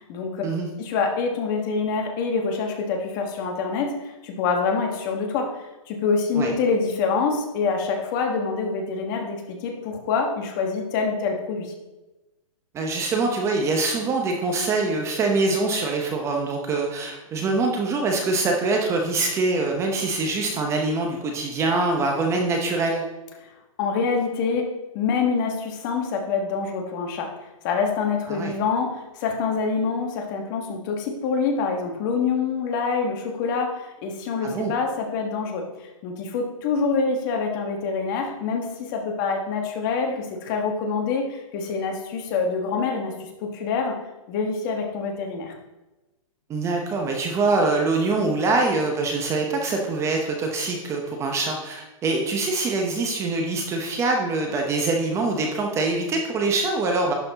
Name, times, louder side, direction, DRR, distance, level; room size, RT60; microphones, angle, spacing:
voice 1, 0.0-0.4 0.8-5.5 5.9-11.7 23.8-24.7 24.9-27.3 27.6-35.6 36.0-44.0 44.3-45.5, left 5 dB, 35° left, 3 dB, 1.3 m, -26 dB
voice 2, 12.7-23.0 28.3-28.5 34.4-34.7 46.5-57.1, right 3 dB, 15° right, 2 dB, 0.8 m, -24 dB
11.5 x 4.2 x 4.0 m, 1.1 s
hypercardioid pair, 155°, 18 cm